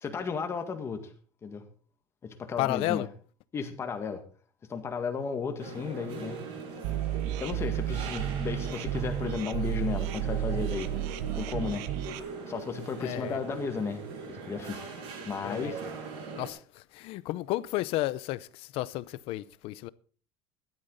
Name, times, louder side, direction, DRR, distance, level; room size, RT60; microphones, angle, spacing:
voice 1, 0.0-1.0 1.4-1.6 2.2-3.1 3.5-4.2 4.7-6.4 7.4-10.9 11.4-11.8 12.5-14.8 15.3-15.8, left 5 dB, 20° left, 1.9 m, -34 dB
voice 2, 2.6-3.1 13.0-13.4 15.4-15.8 16.4-16.6 16.9-19.9, left 17 dB, 55° left, 0.6 m, -32 dB
sound 1, 5.6-16.5, right 4 dB, 55° right, 6.7 m, -41 dB
sound 2, 6.8-12.2, right 11 dB, 70° right, 1.0 m, -32 dB
15.5 x 12.0 x 4.0 m
cardioid pair, 160°, 12 cm